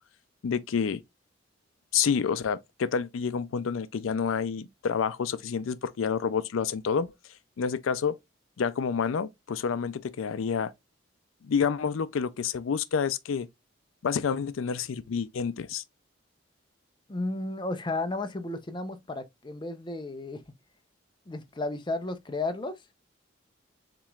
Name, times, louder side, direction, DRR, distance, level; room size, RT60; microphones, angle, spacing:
voice 1, 0.4-1.0 1.9-7.1 7.6-8.2 8.6-10.7 11.5-13.5 14.0-15.8, left 6 dB, 85° left, 0.4 m, -28 dB
voice 2, 17.1-20.4 21.3-22.8, left 2 dB, 25° left, 0.6 m, -33 dB
7.3 x 3.0 x 2.3 m
head